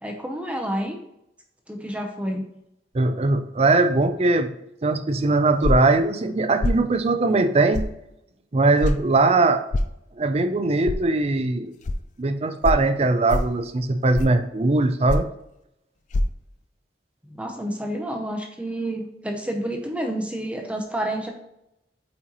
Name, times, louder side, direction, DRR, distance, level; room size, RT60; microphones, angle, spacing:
voice 1, 0.0-1.0 1.7-2.4 17.2-21.3, right 1 dB, 5° right, 3 dB, 0.8 m, -29 dB
voice 2, 2.9-4.5 4.8-7.9 8.5-9.6 10.2-11.7 12.2-15.3, right 2 dB, 35° right, 9 dB, 0.5 m, -20 dB
sound 1, 5.6-5.9 6.6-6.8 7.7-7.9 8.8-9.0 9.7-9.9 10.9-11.0 11.8-12.0 12.6-12.8 13.3-13.6 14.1-14.4 15.1-15.4 16.1-16.2, left 1 dB, 45° left, 0.4 m, -23 dB
8.5 x 4.3 x 3.0 m, 0.81 s
head